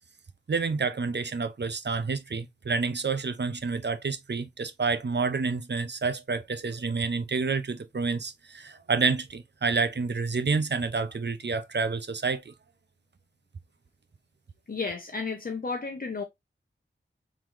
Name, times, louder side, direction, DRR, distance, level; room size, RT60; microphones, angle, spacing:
voice 1, 0.5-12.5, right 4 dB, 55° right, 0.7 m, -29 dB
voice 2, 14.7-16.2, left 4 dB, 45° left, 0.9 m, -32 dB
3.9 x 3.7 x 3.1 m
cardioid pair, 45°, 21 cm